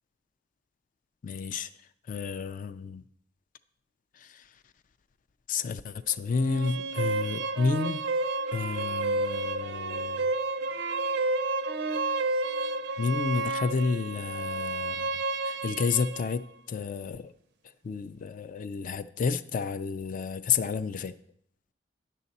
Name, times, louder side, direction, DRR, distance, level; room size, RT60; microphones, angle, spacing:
voice 1, 1.2-1.7 2.1-3.0 4.2-4.4 5.5-8.0 8.5-10.3 13.0-16.4 16.7-17.3 17.8-21.1, left 5 dB, 45° left, 12 dB, 0.3 m, -31 dB
sound 1, 6.3-16.3, right 3 dB, 60° right, 0.4 m, -30 dB
10.0 x 6.5 x 4.0 m, 0.69 s
head